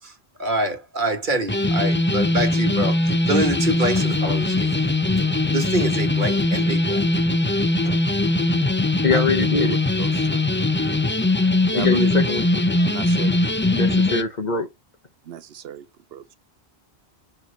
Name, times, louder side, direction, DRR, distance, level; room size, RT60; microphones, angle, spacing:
voice 1, 0.4-4.8 5.5-7.1 7.8-7.9, right 2 dB, 50° right, 1.6 m, -26 dB
sound 1, 1.5-14.2, left 2 dB, 15° left, 0.4 m, -21 dB
voice 2, 9.0-9.8 11.7-12.6 13.8-14.7, left 4 dB, 45° left, 1.0 m, -23 dB
voice 3, 9.6-10.4 11.7-12.1 12.8-13.4 13.9-14.0 15.3-16.2, right 9 dB, 75° right, 0.8 m, -35 dB
6.7 x 2.9 x 5.1 m
omnidirectional pair, 1.0 m